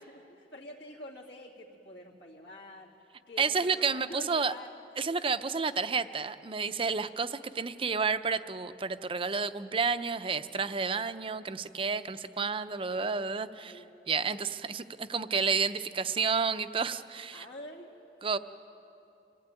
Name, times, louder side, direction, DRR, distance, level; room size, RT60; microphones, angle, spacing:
voice 1, 0.1-2.9 3.3-4.7 5.1-5.2 13.5-13.9 14.3-14.4 17.3-18.4, left 1 dB, 75° left, -3 dB, 2.6 m, -47 dB
voice 2, 3.4-4.5 5.0-17.5 18.2-18.4, right 5 dB, 30° right, 11 dB, 0.6 m, -31 dB
26.0 x 16.5 x 9.0 m, 2.9 s
head